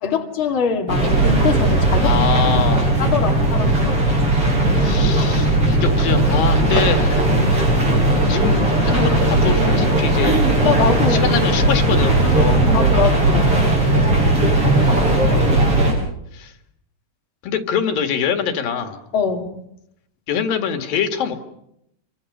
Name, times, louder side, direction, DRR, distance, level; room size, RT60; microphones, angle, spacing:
voice 1, 0.0-2.1 2.5-4.0 7.3-7.7 10.6-11.3 12.7-13.5 19.1-19.6, left 6 dB, 40° left, 2 dB, 2.7 m, -23 dB
sound 1, 0.9-15.9, right 2 dB, 40° right, 8.0 m, -17 dB
voice 2, 2.0-2.9 4.8-7.3 8.3-10.3 11.1-12.8 14.8-15.5 16.3-16.5 17.4-19.0 20.3-21.4, left 7 dB, 90° left, 6 dB, 3.7 m, -24 dB
28.0 x 24.0 x 6.7 m, 0.79 s
omnidirectional pair, 3.9 m